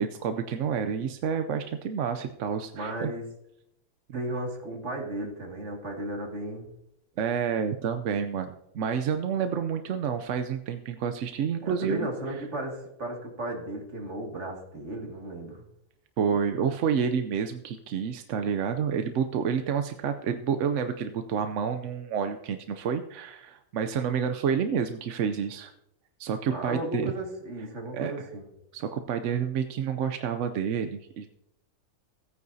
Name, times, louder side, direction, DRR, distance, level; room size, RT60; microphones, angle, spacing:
voice 1, 0.0-3.1 7.2-12.1 16.2-25.7 26.2-27.1 27.9-28.3 28.7-31.3, right 7 dB, 65° right, 8 dB, 0.8 m, -29 dB
voice 2, 2.7-3.2 4.1-6.7 11.6-15.6 26.5-28.5, right 1 dB, 45° right, 0 dB, 2.4 m, -35 dB
16.5 x 9.4 x 2.7 m, 0.79 s
omnidirectional pair, 1.7 m